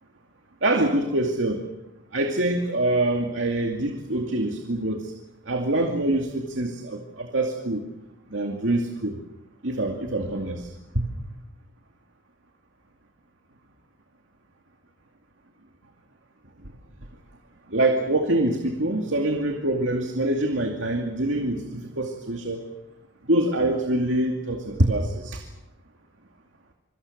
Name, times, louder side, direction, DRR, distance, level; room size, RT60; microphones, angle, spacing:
voice 1, 0.6-1.7 2.1-5.1 5.5-7.9 8.3-9.2 9.6-11.1 17.7-22.6 23.2-25.4, right 1 dB, 75° right, 3 dB, 2.4 m, -25 dB
26.5 x 25.0 x 6.6 m, 0.92 s
head